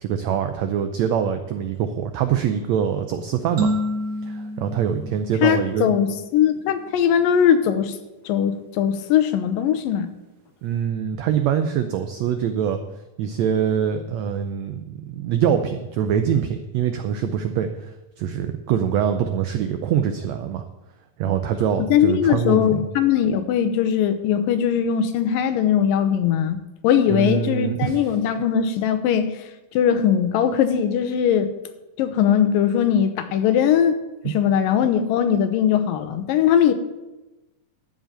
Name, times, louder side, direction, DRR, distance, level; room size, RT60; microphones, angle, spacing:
voice 1, 0.0-3.7 4.2-5.9 10.6-12.8 13.2-20.6 21.2-22.9 27.1-28.0 34.2-34.3, right 8 dB, 90° right, 8 dB, 1.5 m, -24 dB
sound 1, 3.6-6.2, equal, 35° right, 2.0 m, -28 dB
voice 2, 5.4-7.9 8.3-10.1 21.9-26.6 26.8-29.4 29.7-31.5 32.0-34.0 34.3-36.7, left 9 dB, 80° left, 10 dB, 2.5 m, -20 dB
13.0 x 5.0 x 9.0 m, 1.0 s
omnidirectional pair, 4.0 m